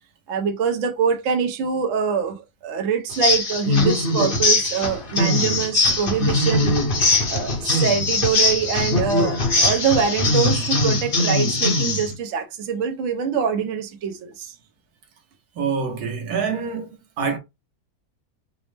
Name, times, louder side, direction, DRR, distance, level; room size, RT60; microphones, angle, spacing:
voice 1, 0.3-6.7 7.3-14.5, right 6 dB, 60° right, 1.0 m, -24 dB
sound 1, 3.1-12.1, left 2 dB, 40° left, 1.0 m, -21 dB
voice 2, 15.6-16.9 17.2-17.4, right 5 dB, 90° right, 1.4 m, -25 dB
5.1 x 2.0 x 3.2 m
omnidirectional pair, 1.6 m